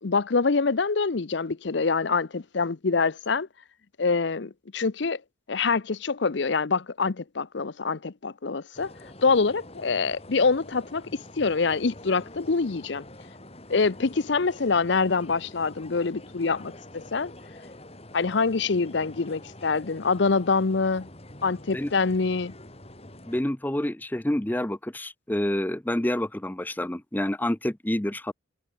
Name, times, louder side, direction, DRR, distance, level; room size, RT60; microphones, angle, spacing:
voice 1, 0.0-3.5 4.0-5.2 5.5-8.9 9.2-13.0 13.7-17.3 18.1-21.1 21.4-22.5, left 4 dB, 60° left, 0.7 m, -25 dB
sound 1, 8.7-23.4, left 1 dB, 30° left, 4.6 m, -46 dB
voice 2, 23.3-28.3, left 1 dB, 10° left, 0.6 m, -28 dB
head